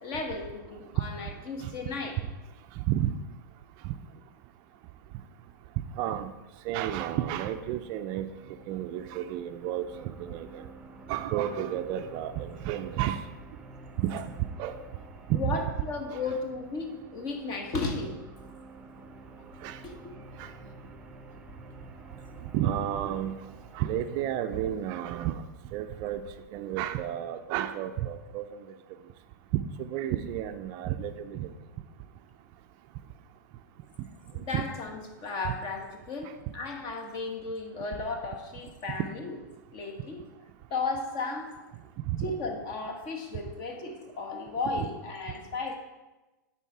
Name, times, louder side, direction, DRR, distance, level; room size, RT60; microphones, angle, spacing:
voice 1, 0.0-2.2 15.3-18.1 19.8-20.1 34.3-39.3 39.7-40.2 40.7-41.5 42.2-45.8, left 3 dB, 40° left, 3 dB, 1.5 m, -34 dB
voice 2, 2.8-3.1 3.8-3.9 6.0-6.3 6.6-8.3 8.7-10.6 11.1-13.2 14.0-14.3 14.6-14.8 15.3-15.6 16.1-16.3 19.6-19.8 20.4-20.5 22.5-23.4 23.7-25.4 25.7-26.2 26.5-28.6 29.5-31.5 34.5-34.6 35.4-35.5 36.2-36.3 42.1-42.3 44.8-44.9, right 11 dB, 40° right, 10 dB, 0.4 m, -31 dB
sound 1, 7.3-24.3, right 2 dB, 10° right, 0.7 m, -50 dB
9.1 x 4.2 x 4.6 m, 1.1 s
hypercardioid pair, 115°, 11 cm